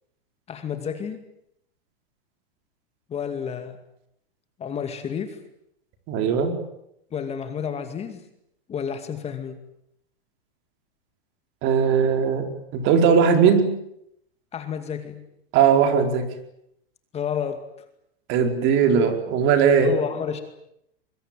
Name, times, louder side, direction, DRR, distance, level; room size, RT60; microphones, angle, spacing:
voice 1, 0.5-1.3 3.1-3.8 4.6-5.4 7.1-8.2 8.7-9.6 14.5-15.2 17.1-17.7 19.8-20.4, left 7 dB, 20° left, 8 dB, 2.3 m, -30 dB
voice 2, 6.1-6.5 11.6-13.7 15.5-16.3 18.3-19.9, right 7 dB, 40° right, 6 dB, 4.6 m, -19 dB
24.5 x 22.5 x 9.2 m, 0.78 s
supercardioid pair, 140°, 31 cm